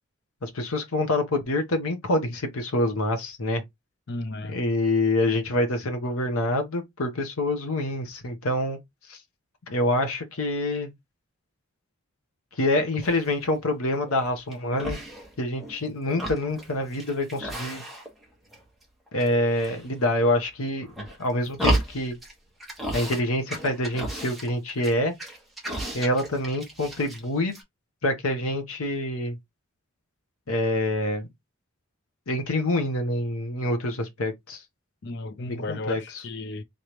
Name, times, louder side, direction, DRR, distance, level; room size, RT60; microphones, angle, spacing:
voice 1, 0.4-3.6 4.5-8.8 9.1-9.2 9.7-10.9 12.6-15.0 15.4-17.8 19.1-20.9 21.2-22.1 22.9-25.1 25.9-27.5 28.0-29.4 30.5-31.2 32.3-34.6 35.5-36.0, left 1 dB, 75° left, 0.9 m, -26 dB
voice 2, 4.1-4.6 35.0-36.6, left 2 dB, 50° left, 0.5 m, -34 dB
sound 1, 13.0-13.4 13.9-14.5 14.8-15.8 16.0-18.2 18.5-19.3 19.5-20.3 20.8-22.3 22.6-23.2 23.5-27.2 27.5-27.6, right 1 dB, ahead, 1.3 m, -33 dB
3.8 x 3.3 x 2.9 m
head